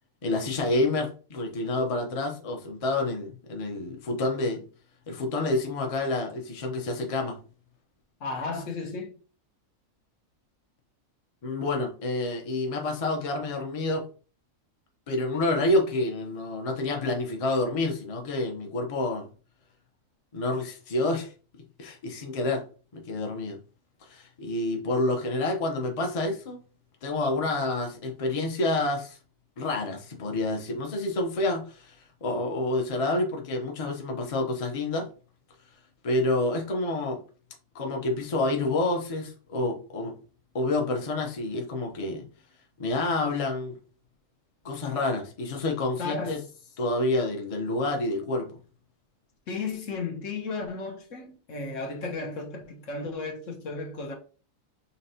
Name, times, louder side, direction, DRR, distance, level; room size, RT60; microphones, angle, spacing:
voice 1, 0.2-4.7 5.1-7.4 11.4-14.0 15.1-19.3 20.3-21.3 21.8-22.6 22.9-23.6 24.0-26.6 27.0-29.2 29.6-35.1 36.0-37.2 37.7-40.2 40.5-42.3 42.8-43.8 44.6-46.4 46.8-48.5, left 2 dB, 30° left, 0.7 m, -28 dB
voice 2, 8.2-9.2 46.0-46.4 49.5-54.2, left 3 dB, 70° left, 1.3 m, -34 dB
5.5 x 3.1 x 2.7 m
omnidirectional pair, 1.4 m